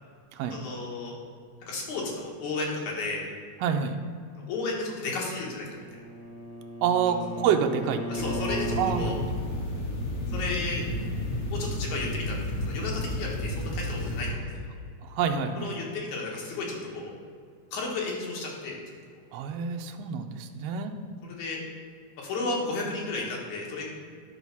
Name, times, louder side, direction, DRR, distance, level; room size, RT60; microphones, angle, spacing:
voice 1, 0.5-1.1 1.7-3.3 4.5-5.7 8.1-9.2 10.3-10.8 11.5-12.4 12.7-14.5 15.6-17.1 17.7-18.8 21.2-21.6 22.2-23.8, left 3 dB, 80° left, -2 dB, 2.9 m, -33 dB
voice 2, 3.6-4.0 6.8-8.4 8.8-9.3 15.0-15.7 19.3-20.9, right 7 dB, 80° right, 5 dB, 1.4 m, -28 dB
Bowed string instrument, 5.4-9.1, right 1 dB, 10° left, 1.0 m, -36 dB
sound 1, 8.1-14.3, left 1 dB, 50° left, 1.0 m, -32 dB
10.0 x 4.1 x 5.9 m, 2.1 s
omnidirectional pair, 3.3 m